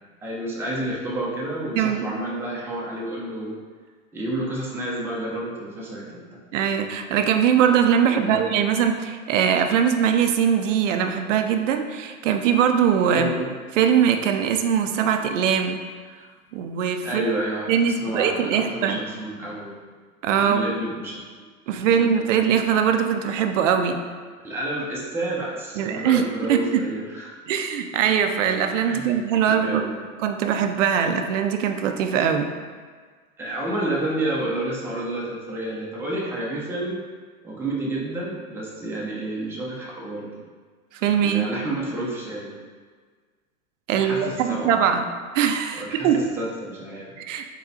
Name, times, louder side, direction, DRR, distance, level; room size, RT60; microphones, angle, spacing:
voice 1, 0.2-3.6 4.1-6.4 8.0-8.6 13.1-13.5 17.0-19.7 20.3-21.2 21.8-22.3 24.4-27.3 28.8-30.0 33.4-37.0 37.4-40.4 41.2-42.5 43.9-44.8 45.8-47.1, right 1 dB, 5° right, -5 dB, 0.7 m, -30 dB
voice 2, 1.8-2.1 6.5-13.3 13.8-15.8 16.5-17.2 17.7-19.0 20.2-20.7 21.7-24.0 25.8-26.9 27.5-29.8 30.2-32.5 41.0-41.5 43.9-45.1 45.3-46.2 47.2-47.5, right 8 dB, 60° right, 6 dB, 0.6 m, -21 dB
4.0 x 3.8 x 2.8 m, 1.5 s
hypercardioid pair, 100°, 43 cm